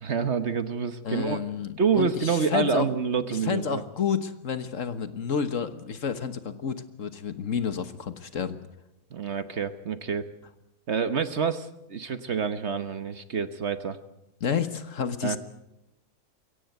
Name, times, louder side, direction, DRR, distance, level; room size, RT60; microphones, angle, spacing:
voice 1, 0.0-1.4 1.8-3.8 9.1-10.3 10.9-14.0 15.2-15.4, right 6 dB, 50° right, 11 dB, 1.2 m, -27 dB
voice 2, 1.0-2.9 3.3-8.6 14.4-15.4, left 7 dB, 55° left, 11 dB, 1.5 m, -30 dB
22.5 x 17.0 x 8.0 m, 0.88 s
omnidirectional pair, 1.6 m